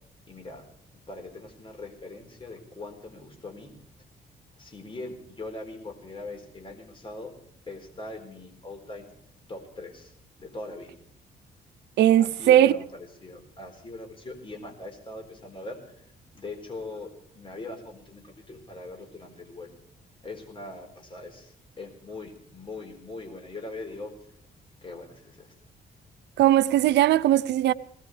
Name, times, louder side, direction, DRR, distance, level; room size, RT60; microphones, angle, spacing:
voice 1, 0.3-0.7 1.1-3.7 4.6-7.3 7.7-9.1 9.5-10.1 10.4-10.9 12.2-16.0 16.3-19.7 20.2-24.1 24.8-25.5, left 2 dB, 30° left, 4.3 m, -41 dB
voice 2, 12.0-12.7 26.4-27.7, right 12 dB, 90° right, 0.6 m, -19 dB
22.0 x 18.0 x 3.3 m
cardioid pair, 115°, 17 cm